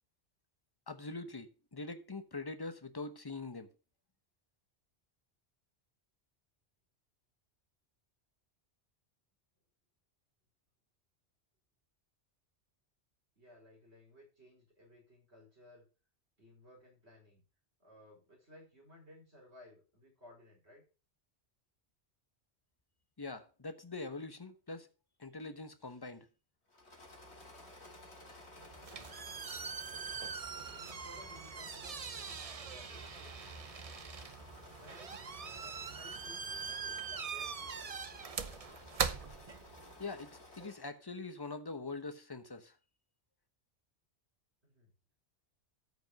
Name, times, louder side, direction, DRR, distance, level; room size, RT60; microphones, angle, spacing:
voice 1, 0.9-3.7 23.2-24.9 25.2-26.3 40.0-42.7, left 3 dB, 20° left, 1.0 m, -43 dB
voice 2, 13.4-15.9 16.4-17.4 17.8-20.8 28.9-29.6 30.6-33.9 34.7-35.2 35.4-38.0 44.6-44.9, left 1 dB, 75° right, 5.1 m, -59 dB
Engine / Mechanisms, 26.7-41.0, left 1 dB, 75° left, 3.0 m, -55 dB
sound 1, 28.6-40.1, right 6 dB, 40° right, 0.7 m, -42 dB
13.5 x 5.2 x 5.3 m
omnidirectional pair, 1.1 m